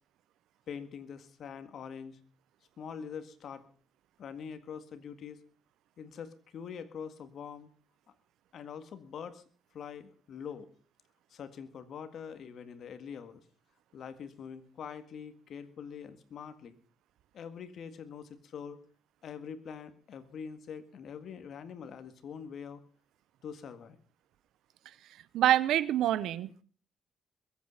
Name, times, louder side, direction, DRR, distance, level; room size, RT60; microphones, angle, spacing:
voice 1, 0.7-2.2 2.8-3.7 4.2-5.4 6.0-7.7 8.5-9.4 9.7-10.7 11.3-13.4 13.9-16.8 17.3-18.8 19.2-22.8 23.4-24.0, left 7 dB, 65° left, 11 dB, 1.8 m, -44 dB
voice 2, 25.3-26.6, right 12 dB, 80° right, 18 dB, 0.8 m, -26 dB
21.5 x 8.5 x 5.7 m, 0.42 s
cardioid pair, 90°, 0 cm